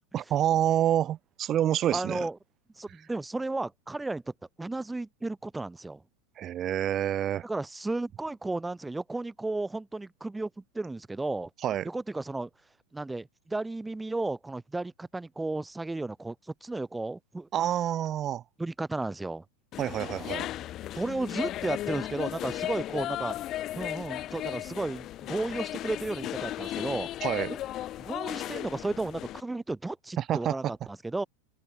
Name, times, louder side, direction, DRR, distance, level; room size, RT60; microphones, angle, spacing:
voice 1, 0.1-2.3 6.4-7.4 11.6-11.9 17.5-18.4 19.8-20.5 27.2-27.5 30.2-30.7, right 11 dB, 30° right, 2.6 m, -27 dB
voice 2, 1.9-2.4 2.8-4.2 4.6-6.0 7.4-11.5 11.8-12.5 12.9-16.3 16.6-17.5 18.6-19.4 20.9-23.4 23.7-27.1 27.5-27.6 28.0-31.3, right 2 dB, 5° right, 2.5 m, -33 dB
sound 1, 19.7-29.4, left 13 dB, 35° left, 1.4 m, -35 dB
open air
figure-of-eight pair, 90°, 0 cm